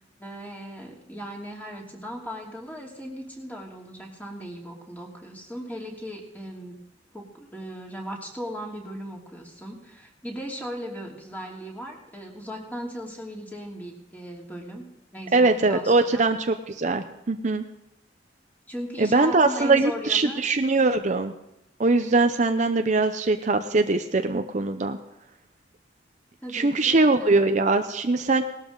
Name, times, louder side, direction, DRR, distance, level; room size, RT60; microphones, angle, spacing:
voice 1, 0.0-6.8 7.1-14.9 15.1-16.3 18.7-20.4 26.4-27.5, equal, 10° left, -1 dB, 2.7 m, -37 dB
voice 2, 15.3-17.6 19.0-21.3 21.8-25.0 26.5-28.4, right 3 dB, 40° right, 7 dB, 0.6 m, -22 dB
19.0 x 12.5 x 3.9 m, 0.89 s
head